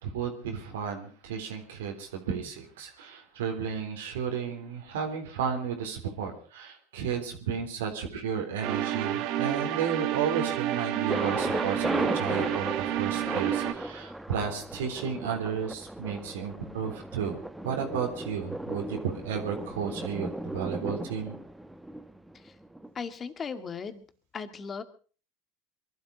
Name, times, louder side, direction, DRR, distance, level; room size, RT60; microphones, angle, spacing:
voice 1, 0.0-17.4 17.6-21.3, right 7 dB, 85° right, 3 dB, 3.5 m, -33 dB
sound 1, 8.6-13.7, right 12 dB, 65° right, 1.6 m, -30 dB
Thunder, 11.1-22.9, right 1 dB, 5° right, 1.0 m, -36 dB
voice 2, 22.9-24.0 24.3-24.8, left 5 dB, 30° left, 10 dB, 2.0 m, -37 dB
22.5 x 12.5 x 5.1 m, 0.40 s
hypercardioid pair, 90°, 0 cm